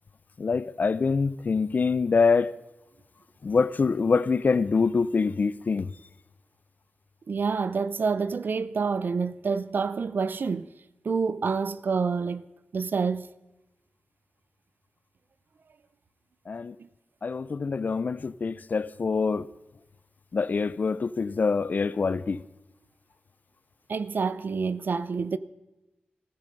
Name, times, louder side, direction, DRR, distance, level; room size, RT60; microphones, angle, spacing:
voice 1, 0.4-2.5 3.4-5.9 16.5-16.7 17.2-19.5 20.3-22.4, left 4 dB, 50° left, 0.5 m, -25 dB
voice 2, 7.3-10.7 11.0-12.5 12.7-13.3 23.9-25.4, right 5 dB, 60° right, 0.5 m, -27 dB
16.0 x 14.5 x 5.3 m
wide cardioid pair, 105°, 4 cm